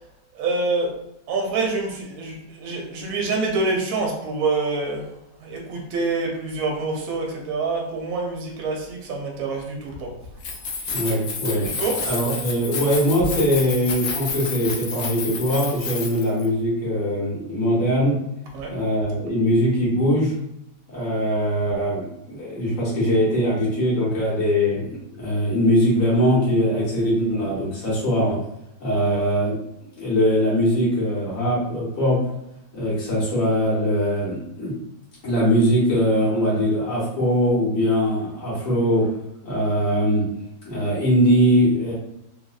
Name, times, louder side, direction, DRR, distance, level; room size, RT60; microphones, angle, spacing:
voice 1, 0.3-0.9 1.3-5.1 5.4-10.1 11.8-12.0 18.5-18.7, right 3 dB, 60° right, 0 dB, 1.1 m, -26 dB
Keys jangling, 10.3-16.5, left 4 dB, 80° left, 0.6 m, -30 dB
voice 2, 10.9-11.7 12.1-18.2 18.7-20.3 20.9-28.4 28.8-32.2 32.7-34.7 35.2-39.1 39.4-40.3 40.6-41.9, equal, 50° left, -7 dB, 1.6 m, -21 dB
3.2 x 2.5 x 2.3 m, 0.82 s
omnidirectional pair, 1.8 m